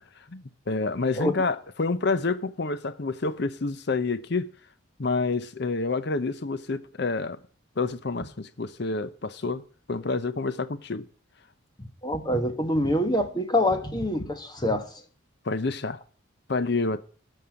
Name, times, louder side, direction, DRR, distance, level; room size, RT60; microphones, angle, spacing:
voice 1, 0.3-4.5 5.0-7.4 7.8-9.6 9.9-11.1 15.4-16.0 16.5-17.0, left 3 dB, 55° left, 0.7 m, -28 dB
voice 2, 11.8-14.9, left 1 dB, 20° left, 1.3 m, -25 dB
12.5 x 5.6 x 8.6 m
head